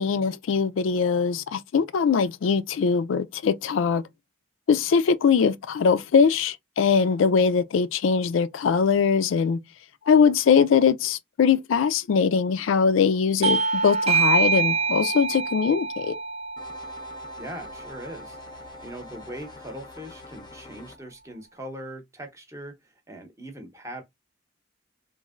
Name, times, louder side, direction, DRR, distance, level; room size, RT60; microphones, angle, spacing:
voice 1, 0.0-4.0 4.7-9.6 10.1-16.2, left 6 dB, 85° left, 0.4 m, -21 dB
Bell / Doorbell, 13.4-18.5, right 5 dB, 30° right, 0.3 m, -26 dB
sound 1, 16.6-21.0, left 3 dB, 25° left, 0.5 m, -45 dB
voice 2, 17.4-24.0, right 1 dB, 15° right, 0.7 m, -40 dB
3.1 x 2.6 x 2.4 m
head